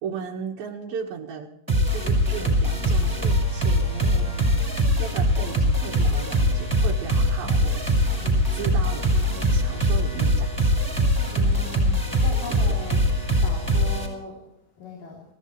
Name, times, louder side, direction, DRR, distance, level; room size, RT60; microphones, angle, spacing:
voice 1, 0.0-1.5 1.9-7.8 8.5-9.1 9.5-10.8 11.3-11.7 12.5-12.8, right 7 dB, 85° right, -1 dB, 3.5 m, -36 dB
sound 1, 1.7-14.1, equal, 5° right, 5.8 m, -22 dB
voice 2, 7.3-7.7 9.3-9.6 11.4-14.4 14.8-15.2, left 3 dB, 70° left, -3 dB, 4.9 m, -39 dB
26.5 x 16.5 x 3.3 m, 0.82 s
omnidirectional pair, 4.0 m